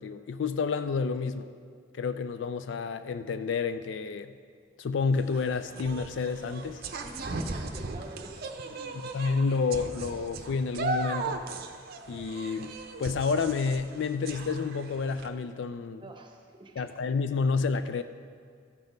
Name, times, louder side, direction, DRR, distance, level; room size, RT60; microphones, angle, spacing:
voice 1, 0.0-1.5 1.9-4.3 4.8-6.8 9.1-11.4 12.1-16.1 16.8-18.0, left 5 dB, 55° left, 11 dB, 0.3 m, -30 dB
sound 1, 5.1-15.3, right 3 dB, 45° right, 0.6 m, -37 dB
voice 2, 7.0-8.3 8.6-9.1 16.0-16.9, right 1 dB, 25° right, 2 dB, 0.9 m, -46 dB
14.0 x 6.1 x 5.2 m, 2.2 s
head